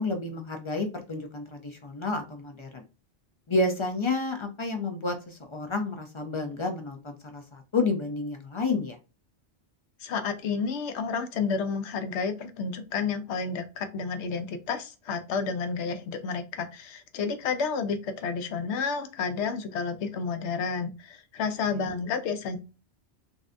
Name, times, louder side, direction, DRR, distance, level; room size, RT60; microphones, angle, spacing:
voice 1, 0.0-2.8 3.5-9.0, left 3 dB, 50° left, 4 dB, 0.3 m, -30 dB
voice 2, 10.0-22.6, left 5 dB, 85° left, 8 dB, 0.9 m, -31 dB
3.2 x 2.6 x 2.5 m, 0.30 s
omnidirectional pair, 1.1 m